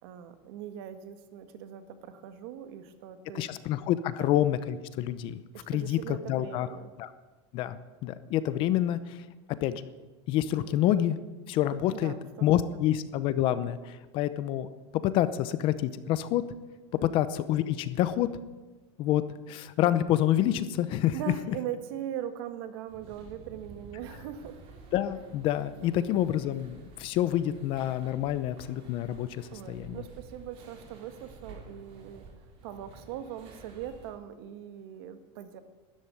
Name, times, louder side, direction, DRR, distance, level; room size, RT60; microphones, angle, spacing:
voice 1, 0.0-3.5 4.1-4.3 5.5-6.9 10.6-10.8 11.9-12.5 12.7-12.8 16.9-17.1 21.1-24.6 25.7-25.9 29.5-35.6, right 10 dB, 55° right, 10 dB, 1.7 m, -41 dB
voice 2, 3.3-6.7 7.0-7.1 7.5-9.2 9.6-9.8 10.3-11.2 11.5-12.1 12.4-14.7 15.0-16.4 17.0-18.3 19.0-21.1 24.9-30.0, left 12 dB, 35° left, 14 dB, 0.8 m, -28 dB
sound 1, 22.9-34.1, right 3 dB, 35° right, 3.8 m, -51 dB
13.0 x 11.0 x 9.8 m, 1.2 s
supercardioid pair, 165°, 15 cm